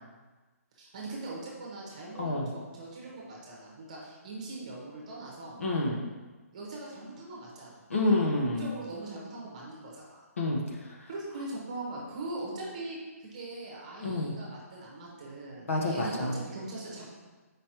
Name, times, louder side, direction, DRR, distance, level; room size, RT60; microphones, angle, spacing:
voice 1, 0.7-5.6 6.5-7.8 8.6-10.2 11.1-17.2, right 2 dB, 25° right, -4 dB, 1.2 m, -41 dB
voice 2, 5.6-6.0 7.9-8.6 10.4-10.6 14.0-14.3 15.7-16.3, left 2 dB, 55° left, -2 dB, 1.2 m, -28 dB
7.1 x 5.2 x 3.0 m, 1.3 s
hypercardioid pair, 180°, 9 cm